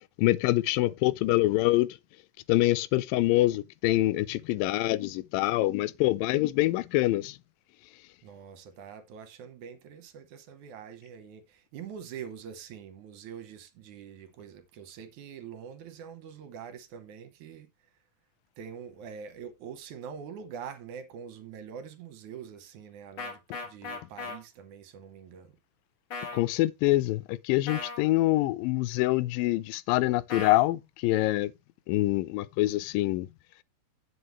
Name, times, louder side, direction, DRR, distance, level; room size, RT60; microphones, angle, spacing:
voice 1, 0.2-1.9 2.5-7.4 26.3-31.5 31.9-33.3, left 17 dB, 90° left, 2.4 m, -25 dB
voice 2, 8.2-17.7 18.6-25.6, right 7 dB, 70° right, 2.3 m, -44 dB
sound 1, 23.2-24.4 26.1-26.4 27.7-28.0 30.3-30.6, left 3 dB, 45° left, 2.2 m, -37 dB
10.5 x 7.8 x 3.1 m
omnidirectional pair, 4.0 m